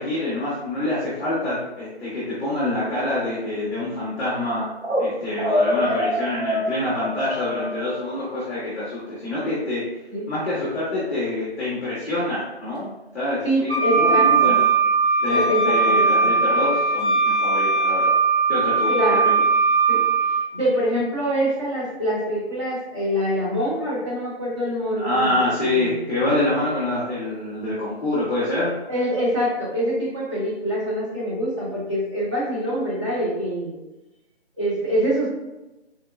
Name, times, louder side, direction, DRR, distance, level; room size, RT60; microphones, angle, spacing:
voice 1, 0.0-4.7 5.0-9.8 10.3-14.6 15.2-18.1 18.5-19.3 24.9-28.7, left 1 dB, ahead, -23 dB, 0.5 m, -26 dB
sound 1, 4.8-5.1 5.4-8.2, left 1 dB, 75° right, 1.2 m, -25 dB
voice 2, 13.4-14.5 15.2-16.3 18.9-19.3 19.9-20.0 20.5-26.0 28.9-33.8 34.6-35.3, equal, 30° right, -8 dB, 1.2 m, -25 dB
Wind instrument woodwind instrument, 13.7-20.4, right 4 dB, 50° right, 1.2 m, -19 dB
4.3 x 2.1 x 2.4 m, 0.99 s
figure-of-eight pair, 155°, 33 cm